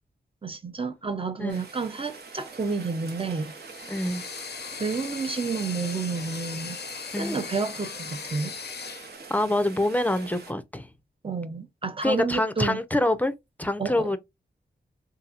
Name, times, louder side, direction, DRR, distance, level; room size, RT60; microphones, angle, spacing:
voice 1, 0.4-3.5 4.8-6.8 7.2-8.5 11.2-12.8 13.8-14.2, right 4 dB, 30° right, 0.7 m, -30 dB
Rain, 1.5-10.5, right 4 dB, 60° right, 0.9 m, -44 dB
sound 1, 3.6-9.1, left 7 dB, 65° left, 0.5 m, -39 dB
voice 2, 3.9-4.2 7.1-7.4 9.3-10.9 12.0-13.3 13.6-14.2, left 1 dB, 10° left, 0.6 m, -25 dB
3.5 x 2.8 x 2.4 m
wide cardioid pair, 95°, 18 cm